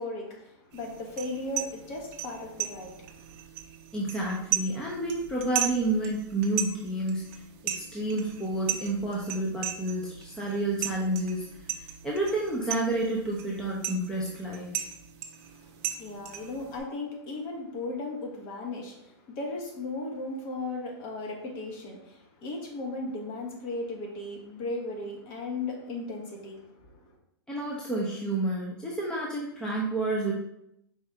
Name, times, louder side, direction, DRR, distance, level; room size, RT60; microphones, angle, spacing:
voice 1, 0.0-3.0 16.0-26.6, left 2 dB, 40° left, 0 dB, 1.2 m, -36 dB
sound 1, 0.7-16.8, right 11 dB, 40° right, 0.6 m, -37 dB
voice 2, 3.9-7.4 7.7-11.5 11.7-14.7 27.5-30.3, right 2 dB, 5° left, -4 dB, 0.6 m, -30 dB
4.7 x 2.7 x 3.4 m, 0.78 s
hypercardioid pair, 130°, 14 cm